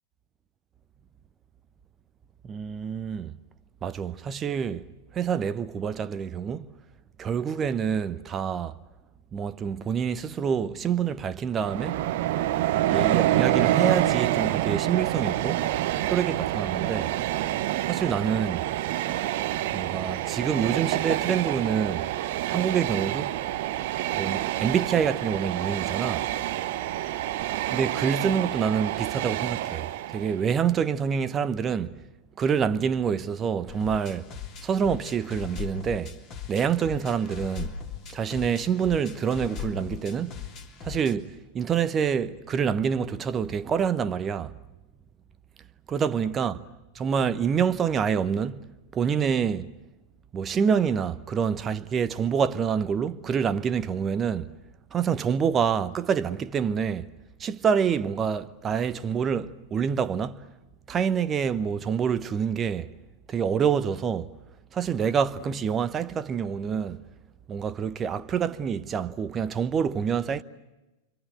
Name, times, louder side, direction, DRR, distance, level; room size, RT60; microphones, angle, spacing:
voice 1, 2.4-3.4 3.8-4.9 5.1-6.7 7.2-8.8 9.3-12.0 12.9-15.7 16.0-17.2 17.9-18.7 19.7-22.1 22.5-23.4 24.1-26.3 27.7-32.0 32.4-34.3 34.6-36.2 36.5-37.8 38.1-40.4 40.8-44.6 45.9-46.6 47.0-49.7 50.3-54.5 54.9-57.1 57.4-60.5 60.9-62.9 63.3-64.3 64.7-67.0 67.5-70.4, right 7 dB, 25° right, 0.9 m, -27 dB
Train, 11.6-30.5, right 14 dB, 50° right, 0.9 m, -27 dB
sound 1, 33.7-41.1, left 8 dB, 35° left, 3.1 m, -39 dB
28.0 x 25.5 x 8.0 m
figure-of-eight pair, 90°, 0 cm